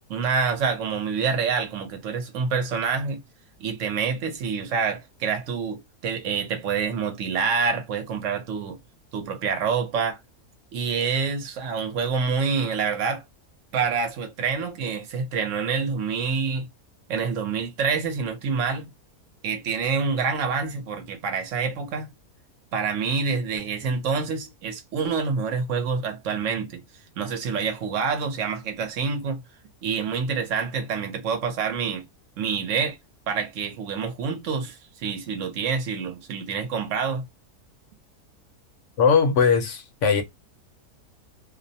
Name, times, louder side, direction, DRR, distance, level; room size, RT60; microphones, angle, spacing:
voice 1, 0.1-3.2 3.6-8.8 9.1-10.2 10.7-13.2 13.7-16.7 17.1-18.9 19.4-22.1 22.7-26.8 27.2-29.4 29.8-32.0 32.4-33.0 33.3-37.3, right 5 dB, 65° right, 0.9 m, -27 dB
voice 2, 39.0-40.2, left 6 dB, 65° left, 0.8 m, -19 dB
2.6 x 2.1 x 2.6 m
omnidirectional pair, 1.6 m